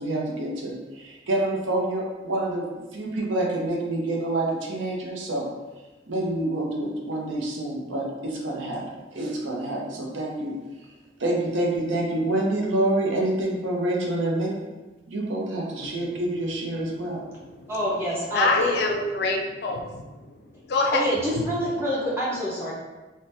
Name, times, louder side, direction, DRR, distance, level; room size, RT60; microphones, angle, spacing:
voice 1, 0.0-2.7 2.9-5.5 6.1-10.5 11.2-14.7 15.1-17.2, right 1 dB, 80° right, -2 dB, 0.6 m, -27 dB
voice 2, 17.7-18.7 20.9-22.7, equal, 15° right, -8 dB, 0.8 m, -26 dB
voice 3, 18.3-20.0 20.7-21.0, left 3 dB, 55° left, 1 dB, 0.4 m, -25 dB
2.6 x 2.1 x 3.3 m, 1.1 s
head